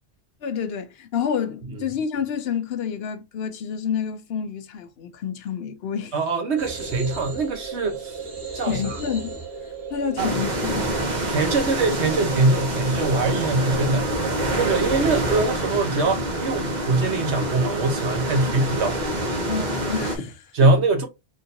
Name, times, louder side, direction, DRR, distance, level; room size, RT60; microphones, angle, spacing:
voice 1, 0.4-6.1 8.7-9.4 9.9-11.1 19.5-20.7, left 7 dB, 70° left, 0.8 m, -29 dB
voice 2, 6.1-8.2 8.5-8.9 10.2-10.3 11.3-14.1 14.5-19.0 20.5-21.1, right 3 dB, 85° right, 1.2 m, -23 dB
sound 1, 6.6-15.5, right 5 dB, 65° right, 1.2 m, -35 dB
sound 2, 10.2-20.2, right 1 dB, 45° right, 0.9 m, -26 dB
3.7 x 2.6 x 2.6 m
omnidirectional pair, 1.1 m